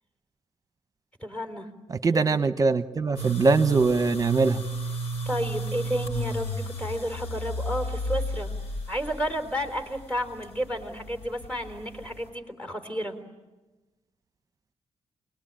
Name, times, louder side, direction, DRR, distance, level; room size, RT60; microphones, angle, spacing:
voice 1, 1.2-1.7 2.1-2.3 5.3-8.5 8.9-13.2, equal, 10° left, 7 dB, 3.8 m, -31 dB
voice 2, 1.9-4.6, right 4 dB, 35° right, 11 dB, 1.0 m, -22 dB
sound 1, 3.2-12.3, right 1 dB, 90° left, 5.8 m, -33 dB
29.0 x 20.5 x 9.0 m, 1.1 s
cardioid pair, 95°, 11 cm